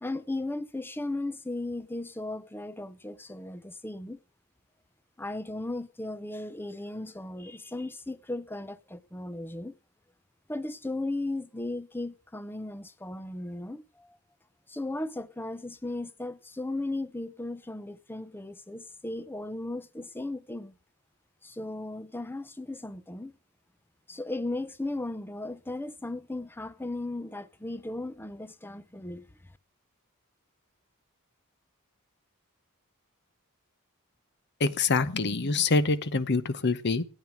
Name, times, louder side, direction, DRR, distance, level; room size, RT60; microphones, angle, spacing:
voice 1, 0.0-4.2 5.2-9.7 10.5-14.2 14.7-20.7 21.4-23.4 24.1-29.2, left 2 dB, 10° left, 0.6 m, -36 dB
voice 2, 34.6-37.0, left 3 dB, 50° left, 0.9 m, -25 dB
13.0 x 9.0 x 6.2 m
head